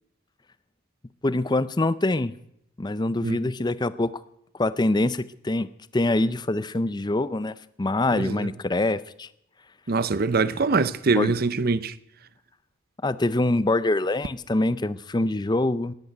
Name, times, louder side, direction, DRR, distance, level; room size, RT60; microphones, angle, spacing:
voice 1, 1.2-2.3 2.8-4.1 4.6-9.3 11.2-11.3 13.0-15.9, left 2 dB, 20° left, 0.5 m, -24 dB
voice 2, 8.1-8.5 9.9-11.9, right 4 dB, 45° right, 0.7 m, -23 dB
14.5 x 10.5 x 9.3 m
head